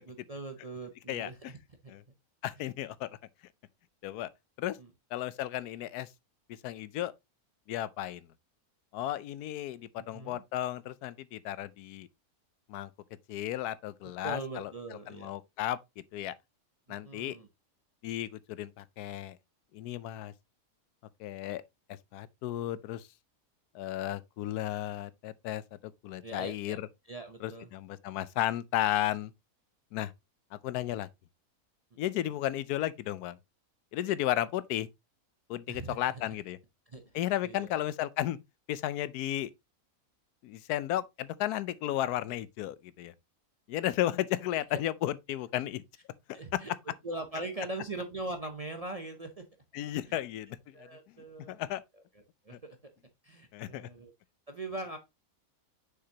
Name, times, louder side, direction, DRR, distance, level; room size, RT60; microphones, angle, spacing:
voice 1, 0.1-1.6 1.8-1.9 4.8-4.9 10.0-10.4 14.2-15.3 17.0-17.5 26.2-26.8 27.1-27.7 35.7-36.3 36.9-37.2 37.4-37.7 46.3-46.7 47.0-49.4 50.1-50.2 50.7-51.6 52.4-52.8 53.2-54.1 54.5-55.0, right 2 dB, 40° right, 0.5 m, -41 dB
voice 2, 1.1-1.5 1.9-2.0 2.4-3.1 4.0-4.3 4.6-4.8 5.1-6.1 6.6-7.1 7.7-8.3 8.9-12.1 12.7-12.9 13.3-14.7 15.1-16.3 16.9-17.4 18.0-19.4 19.7-20.3 21.2-21.6 21.9-23.1 23.7-26.9 27.4-29.3 29.9-30.1 30.5-31.1 32.0-33.4 33.9-34.9 35.5-36.6 37.1-38.4 38.7-39.5 40.4-43.1 43.7-45.8 46.5-46.6 49.7-50.9 51.5-51.8 53.5-53.9, left 13 dB, 90° left, 1.1 m, -34 dB
6.4 x 5.9 x 2.8 m
omnidirectional pair, 1.6 m